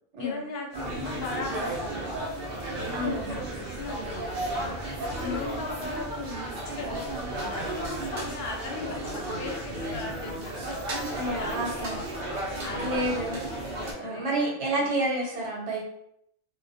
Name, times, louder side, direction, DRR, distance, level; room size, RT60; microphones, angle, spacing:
voice 1, 0.2-2.5 2.8-3.2 3.6-4.8 5.1-6.4 6.8-10.7 11.2-12.1 12.6-13.2 13.9-14.9, left 3 dB, 65° left, 0 dB, 0.7 m, -38 dB
sound 1, 0.7-13.9, right 1 dB, 60° right, 0.7 m, -33 dB
voice 2, 2.9-3.3 5.2-5.4 11.1-12.0 12.8-13.4 14.0-15.8, right 1 dB, 80° right, -3 dB, 1.1 m, -29 dB
2.3 x 2.1 x 2.6 m, 0.73 s
omnidirectional pair, 1.2 m